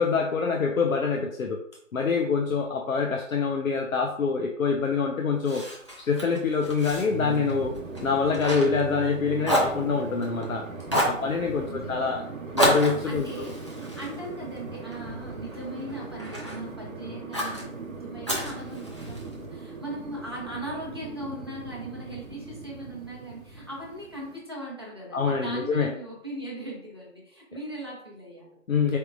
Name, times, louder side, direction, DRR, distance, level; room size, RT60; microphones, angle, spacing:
voice 1, 0.0-1.6 1.9-5.6 6.0-7.7 8.0-10.7 11.0-13.5 25.1-25.9 28.7-29.0, left 5 dB, 85° left, 2 dB, 0.6 m, -25 dB
Fire, 5.4-9.2 9.4-10.5 10.9-11.2 12.6-15.0 15.5-16.6 17.3-17.6 18.2-19.3, equal, 25° left, 0.5 m, -29 dB
sound 1, 7.0-24.4, right 4 dB, 85° right, 0.8 m, -39 dB
voice 2, 11.1-12.1 13.0-13.6 13.9-28.5, right 1 dB, 20° right, -4 dB, 0.6 m, -39 dB
4.2 x 3.6 x 2.5 m, 0.68 s
figure-of-eight pair, 145°, 40 cm